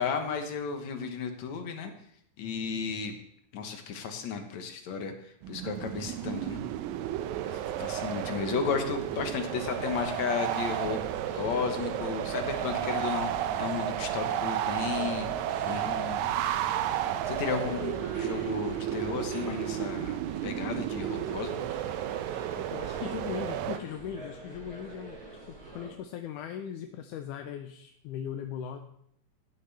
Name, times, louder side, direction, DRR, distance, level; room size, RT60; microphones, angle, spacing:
voice 1, 0.0-1.9 2.4-3.1 3.5-5.1 5.5-6.6 7.5-11.0 11.4-15.3 15.6-16.3 17.3-21.6, left 6 dB, 70° left, 5 dB, 2.3 m, -34 dB
sound 1, 5.4-23.8, right 11 dB, 80° right, 1.9 m, -32 dB
sound 2, 7.6-25.9, right 2 dB, 30° right, 3.5 m, -46 dB
voice 2, 17.5-17.8 22.6-25.2 25.7-28.8, left 9 dB, 85° left, 6 dB, 2.2 m, -39 dB
15.5 x 9.5 x 3.4 m, 0.71 s
omnidirectional pair, 3.5 m